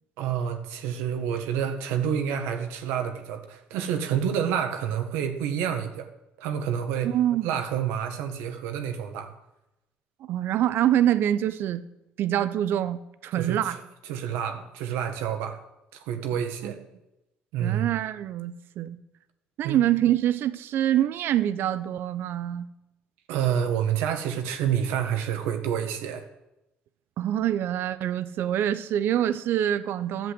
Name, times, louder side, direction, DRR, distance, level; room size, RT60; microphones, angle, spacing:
voice 1, 0.2-6.1 6.4-7.1 7.4-9.3 13.4-13.8 14.1-15.6 15.9-16.8 17.5-17.9 19.6-19.8 23.3-26.2, right 8 dB, 85° right, 1.6 m, -28 dB
voice 2, 7.0-7.5 10.2-11.8 12.2-13.8 16.6-16.7 17.6-19.0 19.6-22.7 27.2-30.3, right 11 dB, 65° right, 0.7 m, -25 dB
11.0 x 7.7 x 7.9 m
supercardioid pair, 75°, 4 cm